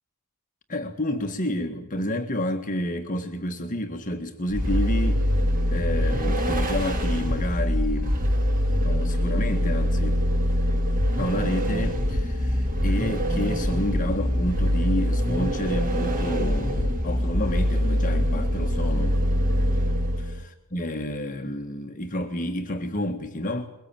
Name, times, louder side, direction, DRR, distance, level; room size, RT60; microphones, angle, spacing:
voice 1, 0.7-5.2 5.7-8.2 8.8-10.2 11.2-19.2 20.2-23.7, left 1 dB, 35° left, 1.6 m, -30 dB
Vehicle, 4.5-20.4, equal, 40° right, 2.5 m, -24 dB
22.5 x 22.5 x 8.9 m
head